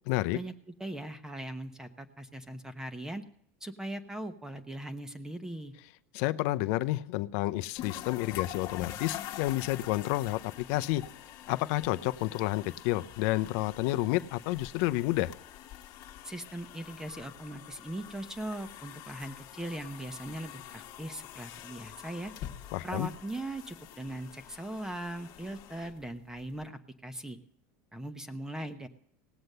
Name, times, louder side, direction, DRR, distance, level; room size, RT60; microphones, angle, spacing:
voice 1, 0.1-0.4 6.1-11.0 11.5-15.3 22.7-23.1, left 17 dB, 65° left, 13 dB, 0.6 m, -30 dB
voice 2, 0.8-3.2 3.6-5.7 16.2-22.3 22.8-27.4 27.9-28.9, right 1 dB, 5° right, 9 dB, 1.0 m, -40 dB
sound 1, 7.8-26.6, left 12 dB, 50° left, 1.3 m, -46 dB
18.0 x 7.9 x 6.7 m, 0.67 s
supercardioid pair, 135°, 8 cm